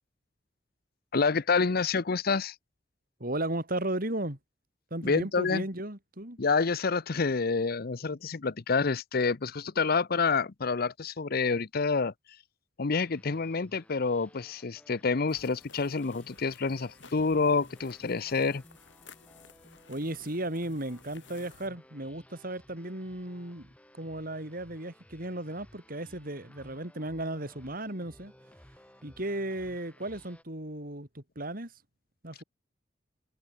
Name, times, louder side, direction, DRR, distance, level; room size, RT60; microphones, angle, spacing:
voice 1, 1.1-2.5 5.0-5.6 6.4-12.1 12.8-18.6, left 4 dB, 55° left, 0.7 m, -28 dB
voice 2, 3.2-4.4 4.9-6.4 19.9-28.3 29.0-31.7 32.2-32.4, right 1 dB, 50° right, 4.7 m, -35 dB
sound 1, 12.9-30.4, equal, 5° left, 6.8 m, -58 dB
sound 2, 15.3-21.7, left 5 dB, 75° left, 5.6 m, -55 dB
head